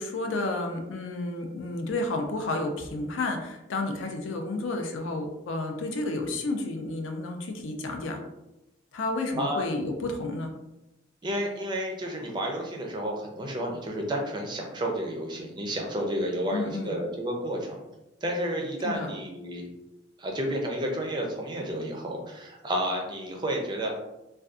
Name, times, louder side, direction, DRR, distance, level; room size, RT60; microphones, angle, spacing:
voice 1, 0.0-8.2 8.9-10.5 16.5-17.0 18.8-19.1, left 2 dB, 90° left, 4 dB, 0.4 m, -31 dB
voice 2, 9.3-9.7 11.2-17.8 18.2-19.6 20.2-24.0, equal, 25° right, 1 dB, 0.4 m, -31 dB
2.5 x 2.2 x 2.3 m, 0.94 s
head